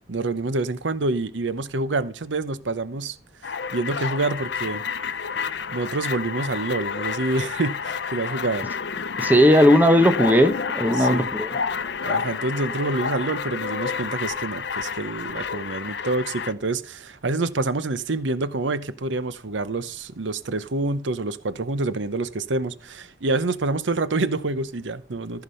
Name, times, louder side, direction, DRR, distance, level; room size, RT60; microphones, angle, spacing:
voice 1, 0.1-3.2 3.7-4.8 5.7-8.7 10.9-11.3 12.0-25.4, right 2 dB, 80° right, 0.8 m, -27 dB
sound 1, 3.4-16.5, left 6 dB, 70° left, 0.7 m, -29 dB
voice 2, 9.2-11.5, equal, 10° right, 0.8 m, -17 dB
14.5 x 5.9 x 5.5 m
head